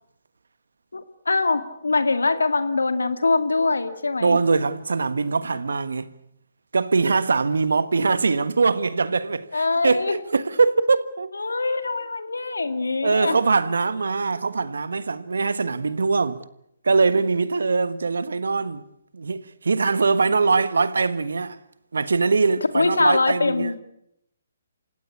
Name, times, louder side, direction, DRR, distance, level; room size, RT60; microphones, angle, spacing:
voice 1, 0.9-4.4 9.5-10.2 11.3-13.4 22.7-23.8, left 3 dB, 85° left, 2.3 m, -23 dB
voice 2, 4.2-6.1 6.7-11.3 13.0-16.4 16.8-18.8 19.1-21.6 21.9-23.8, right 4 dB, 75° right, 1.4 m, -22 dB
28.0 x 16.5 x 8.5 m
figure-of-eight pair, 140°, 0 cm